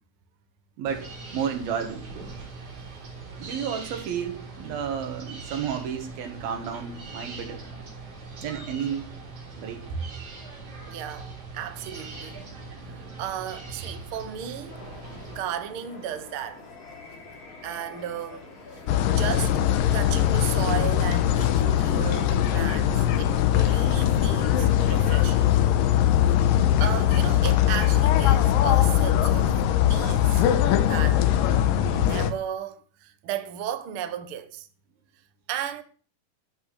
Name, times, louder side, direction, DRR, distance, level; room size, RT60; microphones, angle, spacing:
voice 1, 0.8-2.1 3.4-7.6 8.4-9.1 9.6-10.0, right 7 dB, 80° right, 3.7 m, -32 dB
sound 1, 0.9-15.4, right 3 dB, 40° right, 4.3 m, -41 dB
voice 2, 2.3-3.0 10.9-11.3 11.5-12.4 12.9-14.8 15.2-16.6 17.6-18.5 19.1-19.6 19.9-25.5 26.8-29.5 29.9-30.4 30.8-31.2 31.9-34.7 35.5-35.8, right 10 dB, 65° right, 1.4 m, -35 dB
sound 2, 14.7-26.4, left 3 dB, 45° left, 3.8 m, -46 dB
sound 3, 18.9-32.3, left 11 dB, 75° left, 2.5 m, -21 dB
13.5 x 6.1 x 8.3 m
omnidirectional pair, 4.2 m